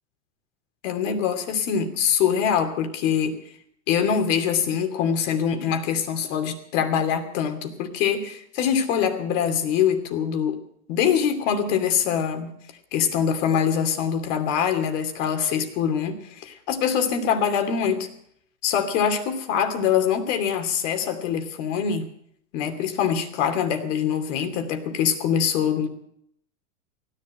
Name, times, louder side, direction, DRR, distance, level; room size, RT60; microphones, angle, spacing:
voice 1, 0.8-3.4 3.9-10.6 10.9-12.6 12.9-18.1 18.6-22.0 22.5-25.9, left 8 dB, 60° left, 7 dB, 2.8 m, -24 dB
16.0 x 11.0 x 7.8 m, 0.71 s
hypercardioid pair, 110°, 42 cm